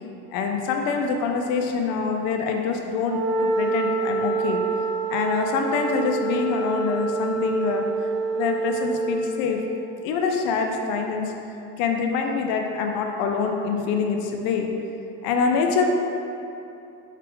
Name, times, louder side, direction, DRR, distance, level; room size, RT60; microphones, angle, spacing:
voice 1, 0.3-4.6 5.1-7.8 8.4-9.6 10.0-11.3 11.8-14.7 15.2-15.9, left 5 dB, 75° left, 3 dB, 0.5 m, -25 dB
Wind instrument woodwind instrument, 3.0-9.3, right 4 dB, 20° right, 0.4 m, -26 dB
4.6 x 2.4 x 3.5 m, 2.8 s
cardioid pair, 130°, 35 cm